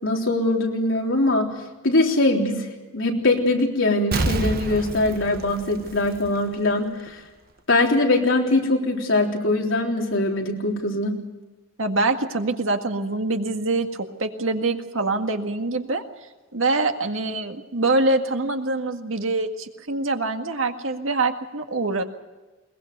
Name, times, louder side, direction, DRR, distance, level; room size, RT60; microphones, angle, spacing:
voice 1, 0.0-1.5 1.8-2.7 2.9-7.2 7.7-11.2, left 2 dB, 70° left, 0 dB, 3.6 m, -22 dB
Explosion, 4.1-6.7 7.1-7.2, right 2 dB, 50° right, 1.3 m, -28 dB
voice 2, 11.8-16.0 16.5-22.0, right 2 dB, 80° right, 5 dB, 1.9 m, -24 dB
21.5 x 20.5 x 6.8 m, 1.2 s
head